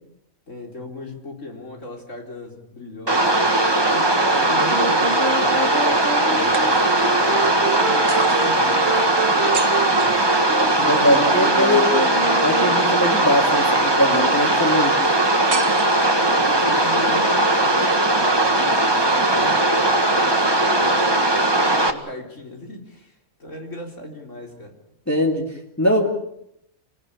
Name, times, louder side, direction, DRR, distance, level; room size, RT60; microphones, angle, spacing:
voice 1, 0.5-3.4 3.7-8.9 9.2-10.3 16.1-24.7, left 2 dB, 60° left, 2 dB, 4.3 m, -36 dB
sound 1, 3.1-21.9, right 2 dB, 20° right, 1.8 m, -19 dB
sound 2, 3.4-4.5 6.5-7.3 8.1-10.9 15.5-16.6, right 5 dB, 65° right, 2.0 m, -35 dB
Wind instrument woodwind instrument, 4.6-13.4, right 3 dB, 50° right, 2.0 m, -29 dB
voice 2, 10.8-11.9 12.4-15.0 25.1-26.1, left 1 dB, 10° left, -1 dB, 2.6 m, -21 dB
27.5 x 18.5 x 8.8 m, 0.77 s
omnidirectional pair, 1.5 m